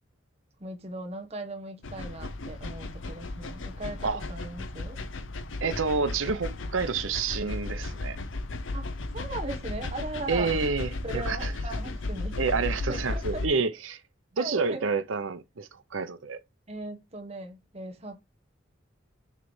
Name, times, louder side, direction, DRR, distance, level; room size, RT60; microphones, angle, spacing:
voice 1, 0.6-5.0 8.7-8.9 9.1-10.6 11.0-12.3 12.9-13.4 14.4-14.9 16.7-18.2, right 2 dB, 30° right, 1.2 m, -38 dB
sound 1, 1.8-13.5, left 2 dB, 75° left, 0.8 m, -35 dB
voice 2, 5.6-8.2 10.3-11.5 12.4-14.0 14.4-16.4, right 4 dB, 90° right, 0.8 m, -29 dB
6.7 x 3.3 x 4.7 m
head